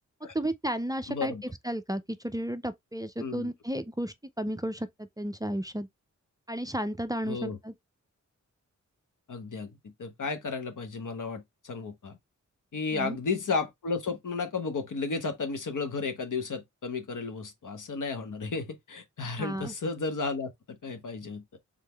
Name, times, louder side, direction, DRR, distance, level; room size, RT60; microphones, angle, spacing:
voice 1, 0.3-1.4 1.6-5.9 6.5-7.7 12.9-13.2 19.4-19.7, equal, 10° right, 0.4 m, -33 dB
voice 2, 1.1-1.4 3.2-3.5 7.3-7.6 9.3-12.2 12.7-21.4, left 4 dB, 85° left, 1.1 m, -33 dB
3.7 x 3.6 x 3.3 m
wide cardioid pair, 115°, 30 cm